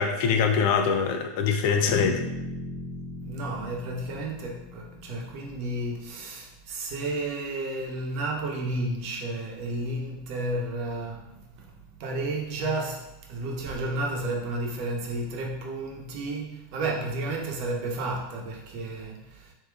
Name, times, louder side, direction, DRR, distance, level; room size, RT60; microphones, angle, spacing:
voice 1, 0.0-2.2, left 6 dB, 55° left, 5 dB, 0.5 m, -23 dB
sound 1, 1.9-5.8, left 2 dB, 30° left, 0.8 m, -38 dB
voice 2, 3.2-11.7 12.0-19.5, right 2 dB, 50° right, 0 dB, 0.9 m, -32 dB
6.4 x 2.7 x 2.4 m, 0.91 s
supercardioid pair, 145°, 0 cm